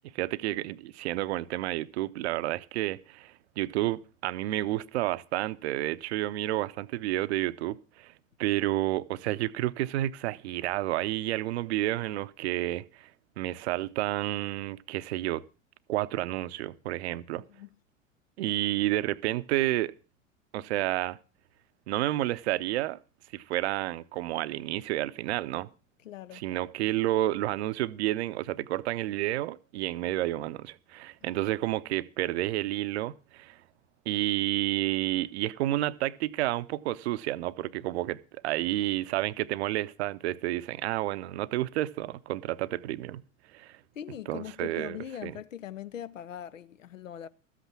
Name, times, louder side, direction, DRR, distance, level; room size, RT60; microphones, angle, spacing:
voice 1, 0.1-8.1 8.4-13.1 13.4-15.4 15.9-17.4 18.4-19.9 20.5-21.2 21.9-23.0 23.3-25.7 26.3-33.6 34.1-43.2 43.5-43.8 44.3-45.0 45.2-45.3, right 15 dB, 55° right, 0.7 m, -30 dB
voice 2, 17.3-17.7 26.0-26.4 31.2-31.3 44.0-47.3, left 10 dB, 75° left, 0.6 m, -41 dB
13.5 x 8.3 x 6.0 m
figure-of-eight pair, 80°, 39 cm